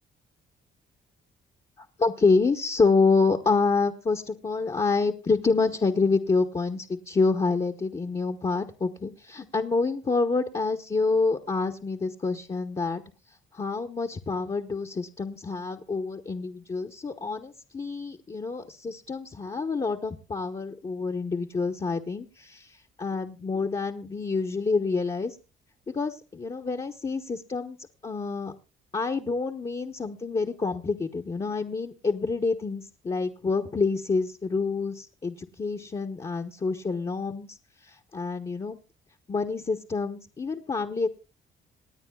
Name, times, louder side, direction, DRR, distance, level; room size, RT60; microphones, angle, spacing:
voice 1, 2.0-13.0 13.5-25.4 25.9-27.8 28.0-28.5 28.9-37.6 37.8-38.8 39.3-41.1, left 4 dB, 25° left, 4 dB, 1.0 m, -27 dB
27.0 x 9.4 x 2.3 m, 0.30 s
cardioid pair, 90°, 20 cm